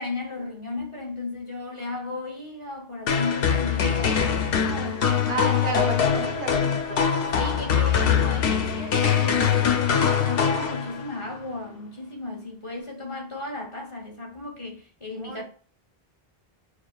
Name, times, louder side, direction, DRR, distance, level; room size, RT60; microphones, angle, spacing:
voice 1, 0.0-5.8 7.3-15.4, left 2 dB, 30° left, 1.0 m, -35 dB
sound 1, 3.1-11.2, left 7 dB, 70° left, 0.8 m, -23 dB
voice 2, 5.3-7.0 15.2-15.4, right 4 dB, 55° right, 0.7 m, -32 dB
6.3 x 2.3 x 2.3 m
omnidirectional pair, 1.0 m